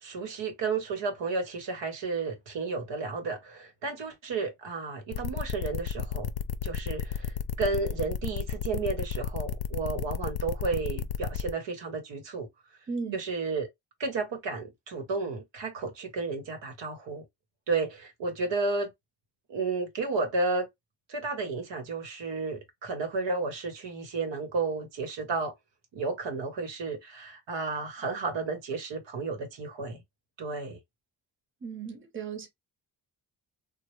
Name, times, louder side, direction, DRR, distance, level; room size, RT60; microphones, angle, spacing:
voice 1, 0.0-6.3 6.6-12.5 13.1-13.7 14.0-17.2 17.7-18.9 19.5-20.7 21.1-25.5 25.9-30.0 30.4-30.8, right 3 dB, 80° right, 1.0 m, -32 dB
sound 1, 5.1-11.5, left 8 dB, 60° left, 0.5 m, -32 dB
voice 2, 12.9-13.2 31.6-32.5, right 5 dB, 30° right, 0.9 m, -36 dB
3.1 x 2.2 x 3.0 m
cardioid pair, 100°, 43 cm